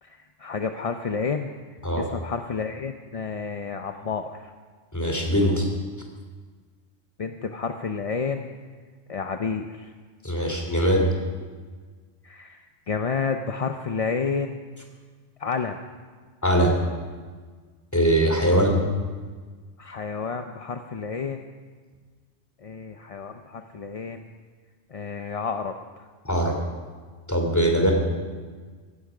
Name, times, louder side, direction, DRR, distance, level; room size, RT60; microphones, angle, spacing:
voice 1, 0.0-4.5 7.2-8.5 9.1-9.9 12.2-14.6 15.4-15.8 18.5-18.7 19.8-21.4 22.6-24.2 24.9-26.1, left 5 dB, 40° left, 6 dB, 0.6 m, -30 dB
voice 2, 4.9-5.7 10.2-11.1 16.4-16.7 17.9-18.8 26.2-26.6 27.3-27.9, right 1 dB, 15° left, 2 dB, 2.9 m, -21 dB
17.0 x 15.5 x 4.9 m, 1.5 s
omnidirectional pair, 1.2 m